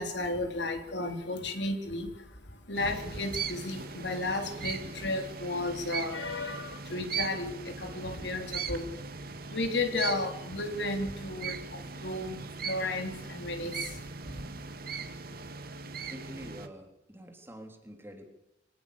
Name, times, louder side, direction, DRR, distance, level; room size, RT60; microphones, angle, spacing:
voice 1, 0.0-15.5, left 2 dB, 70° left, 6 dB, 4.0 m, -34 dB
sound 1, 2.7-16.7, right 5 dB, 55° right, 2.1 m, -39 dB
voice 2, 16.1-18.2, equal, 15° right, 4 dB, 3.5 m, -46 dB
26.0 x 18.0 x 6.9 m, 0.83 s
head